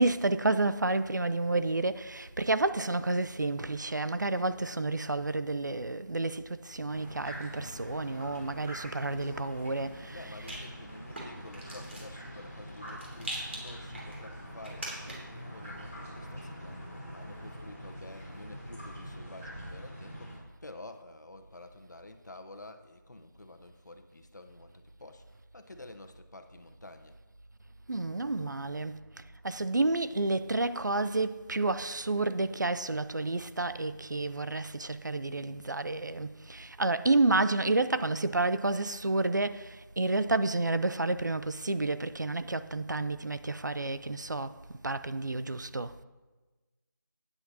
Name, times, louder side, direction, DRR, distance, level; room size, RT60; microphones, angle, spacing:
voice 1, 0.0-10.5 27.9-29.0 29.4-45.9, right 2 dB, 60° right, 0.6 m, -30 dB
sound 1, 6.9-20.4, equal, 5° right, 0.7 m, -44 dB
Rattle, 9.4-15.4, right 1 dB, 35° right, 2.9 m, -44 dB
voice 2, 10.0-27.2, left 2 dB, 60° left, 1.2 m, -50 dB
14.5 x 9.7 x 2.9 m
figure-of-eight pair, 175°, 11 cm